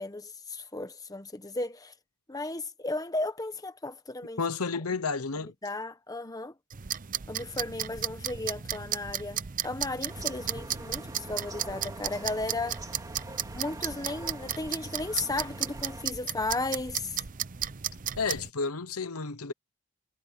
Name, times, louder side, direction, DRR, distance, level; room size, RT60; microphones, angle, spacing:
voice 1, 0.0-1.9 2.3-4.4 5.4-6.5 7.3-12.8 13.5-17.2, left 2 dB, 15° left, 1.2 m, -35 dB
voice 2, 4.4-5.5 18.2-19.5, left 4 dB, 85° left, 1.0 m, -31 dB
sound 1, 6.7-18.5, right 10 dB, 40° right, 0.6 m, -35 dB
sound 2, 10.1-16.0, right 2 dB, 15° right, 3.4 m, -45 dB
head